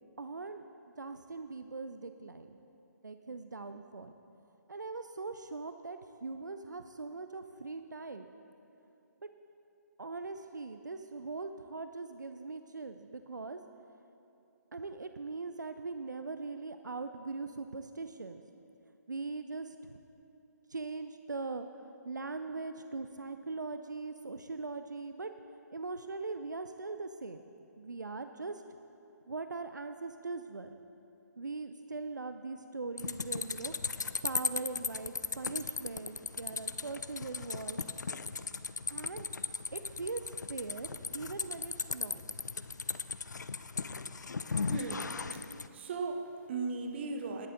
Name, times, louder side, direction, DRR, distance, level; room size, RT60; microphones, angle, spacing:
voice 1, 0.2-0.7 1.0-2.5 3.0-4.1 4.7-8.3 9.2-9.3 10.0-13.6 14.7-18.4 19.1-20.0 20.7-25.3 25.7-27.4 27.8-28.6 29.3-30.8 31.4-37.8 38.9-39.3 39.7-42.2, right 3 dB, 75° right, 8 dB, 0.5 m, -41 dB
sound 1, 33.0-45.7, left 4 dB, 70° left, 0.4 m, -37 dB
voice 2, 44.7-45.4 45.7-47.5, right 4 dB, 35° right, 5 dB, 1.1 m, -37 dB
19.0 x 7.4 x 3.8 m, 2.8 s
figure-of-eight pair, 135°, 10 cm